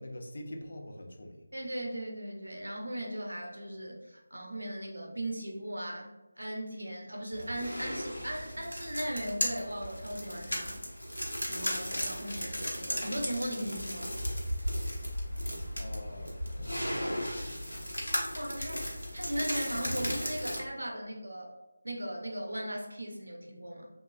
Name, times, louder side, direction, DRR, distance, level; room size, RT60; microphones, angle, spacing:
voice 1, 0.0-1.4 15.8-17.8, left 1 dB, 50° left, 3 dB, 0.4 m, -45 dB
voice 2, 1.5-6.1 6.4-10.8 11.4-14.1 18.0-18.8 19.1-21.5 21.8-23.9, right 1 dB, 70° right, 0 dB, 0.6 m, -38 dB
sound 1, 7.3-20.6, equal, 80° left, 0.8 m, -35 dB
3.0 x 2.3 x 2.3 m, 1.0 s
figure-of-eight pair, 160°, 0 cm